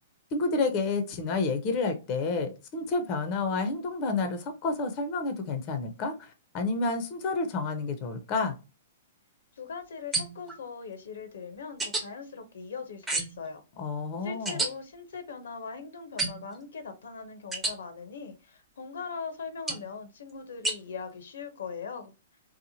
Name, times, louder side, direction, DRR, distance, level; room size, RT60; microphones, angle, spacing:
voice 1, 0.3-6.3 6.5-8.5 13.8-14.6, left 3 dB, 40° left, 0.5 m, -29 dB
voice 2, 9.6-13.6 14.2-22.1, left 5 dB, 75° left, 0.6 m, -40 dB
sound 1, 10.1-10.6 11.8-12.0 13.1-13.5 14.5-14.7 16.2-16.6 17.5-17.7 19.7-19.9 20.6-20.8, right 2 dB, 15° right, 0.8 m, -30 dB
2.9 x 2.1 x 2.7 m
hypercardioid pair, 120°, 0 cm